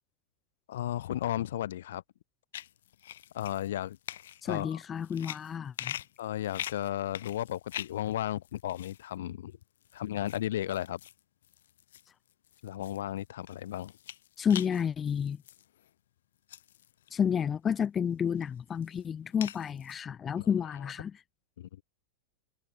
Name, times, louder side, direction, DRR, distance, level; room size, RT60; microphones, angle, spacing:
voice 1, 0.7-2.0 3.3-4.0 4.4-4.8 6.2-9.6 9.9-11.0 12.6-13.9 20.4-20.5 21.6-21.8, left 12 dB, 70° left, 1.8 m, -34 dB
sound 1, 2.5-8.1 8.4-9.0 9.6-10.4 10.7-15.9 16.5-17.3 17.8-17.9 18.4-20.0, left 11 dB, 85° left, 3.6 m, -44 dB
voice 2, 4.4-6.0 14.4-15.4 17.1-21.2, left 7 dB, 15° left, 0.7 m, -30 dB
supercardioid pair, 180°, 0 cm